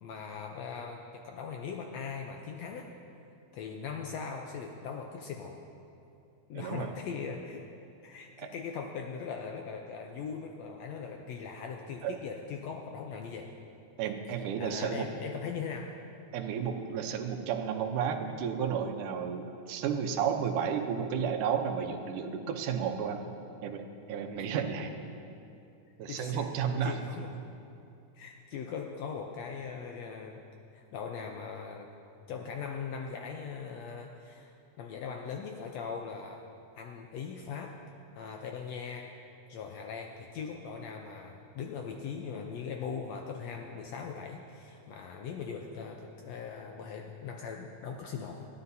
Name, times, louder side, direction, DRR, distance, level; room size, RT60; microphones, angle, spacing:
voice 1, 0.0-2.9 3.5-5.6 6.5-7.6 8.0-13.5 14.6-15.9 24.8-24.9 26.1-26.5 26.8-27.3 28.1-30.4 30.7-31.9 32.3-36.4 36.7-37.7 38.2-39.1 39.5-48.5, left 6 dB, 75° left, 2 dB, 1.6 m, -40 dB
voice 2, 6.5-6.9 8.4-8.5 12.0-12.1 14.0-15.1 16.3-23.2 23.6-24.9 26.0-27.1, right 7 dB, 80° right, 5 dB, 2.3 m, -32 dB
21.0 x 14.5 x 2.7 m, 2.7 s
omnidirectional pair, 3.6 m